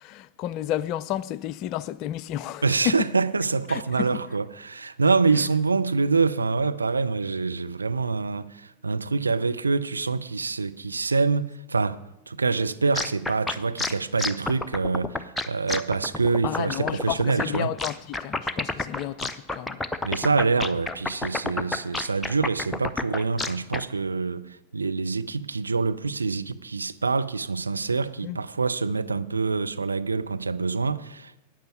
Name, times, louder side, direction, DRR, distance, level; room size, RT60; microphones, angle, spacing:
voice 1, 0.0-3.0 3.7-4.2 5.4-5.5 16.4-19.9 28.2-28.4, left 12 dB, 40° left, 0.4 m, -32 dB
voice 2, 2.6-12.0 12.3-17.7 20.0-31.5, right 4 dB, 80° right, 0.5 m, -26 dB
sound 1, 12.9-23.8, left 2 dB, 10° left, 0.7 m, -29 dB
12.0 x 8.9 x 7.1 m
figure-of-eight pair, 90°, 0 cm